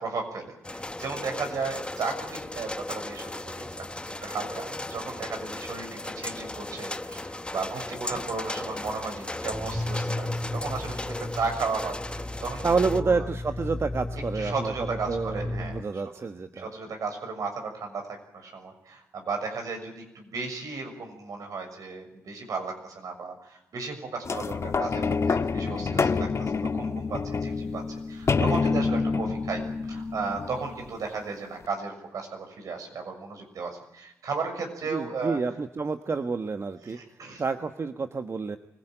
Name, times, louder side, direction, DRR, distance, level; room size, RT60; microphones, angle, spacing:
voice 1, 0.0-12.6 12.9-13.2 14.3-16.0 16.5-35.4 36.8-37.4, right 4 dB, 70° right, 4 dB, 6.5 m, -35 dB
sound 1, 0.6-13.0, left 2 dB, 15° left, 1.4 m, -36 dB
sound 2, 9.5-15.8, left 1 dB, 5° right, 2.2 m, -34 dB
voice 2, 12.6-14.7 15.1-16.7 34.9-37.0 37.4-38.6, right 4 dB, 45° right, 8 dB, 1.4 m, -29 dB
sound 3, 24.2-31.0 31.6-31.7, left 4 dB, 50° left, 1.4 m, -27 dB
24.5 x 17.5 x 9.1 m, 0.87 s
supercardioid pair, 50°, 6 cm